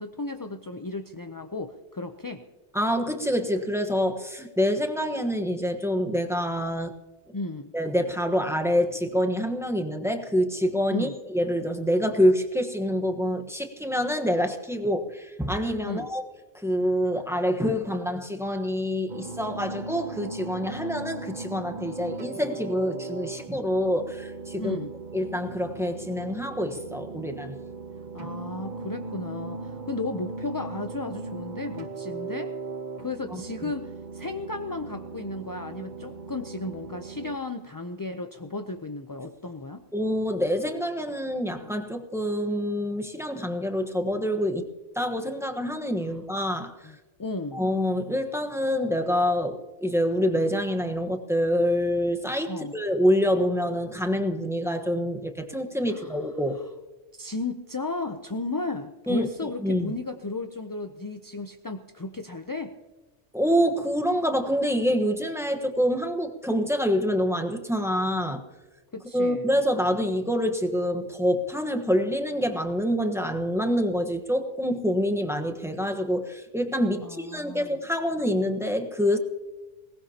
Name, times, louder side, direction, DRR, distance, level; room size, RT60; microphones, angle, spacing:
voice 1, 0.0-2.4 7.3-7.7 10.9-11.1 15.8-16.1 24.6-24.9 28.1-32.6 33.0-39.8 46.0-46.2 46.8-47.6 52.5-52.8 55.9-56.2 57.1-62.8 68.9-69.5 77.0-77.8, left 3 dB, 25° left, 6 dB, 0.4 m, -34 dB
voice 2, 2.7-6.9 7.7-16.2 16.5-24.8 25.1-27.6 33.3-33.7 39.9-44.7 44.9-46.7 47.5-56.6 59.1-60.0 63.3-68.4 69.1-79.2, equal, ahead, 5 dB, 1.1 m, -26 dB
sound 1, 19.1-37.4, right 3 dB, 40° right, 0.9 m, -38 dB
21.5 x 19.0 x 2.9 m, 1.2 s
omnidirectional pair, 1.2 m